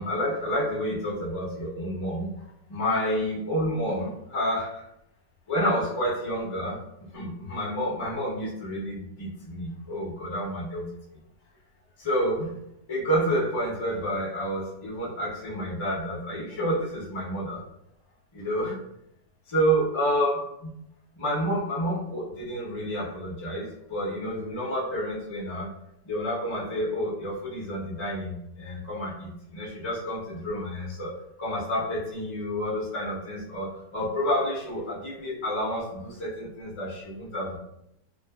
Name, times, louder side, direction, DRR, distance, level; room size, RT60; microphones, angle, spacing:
voice 1, 0.0-2.3 2.7-4.8 5.5-10.8 12.0-12.5 12.9-17.6 18.3-18.8 19.5-20.7 21.2-25.7 26.0-37.6, equal, 45° left, -6 dB, 0.4 m, -29 dB
2.5 x 2.5 x 2.2 m, 0.78 s
omnidirectional pair, 1.9 m